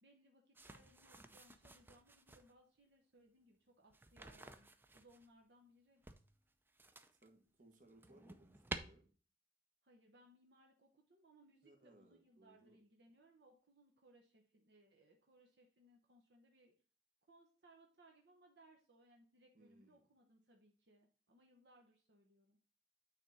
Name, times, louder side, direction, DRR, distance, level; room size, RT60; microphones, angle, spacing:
voice 1, 0.0-6.0 9.8-16.7 17.3-22.6, right 1 dB, 65° right, 1 dB, 0.9 m, -68 dB
sound 1, 0.6-2.5 3.9-5.3 6.0-7.3 7.7-8.8, right 2 dB, 10° right, 0.4 m, -52 dB
voice 2, 7.2-9.1 11.6-12.8 19.5-20.0, right 2 dB, 45° right, 4 dB, 1.3 m, -66 dB
9.0 x 3.5 x 4.1 m, 0.40 s
head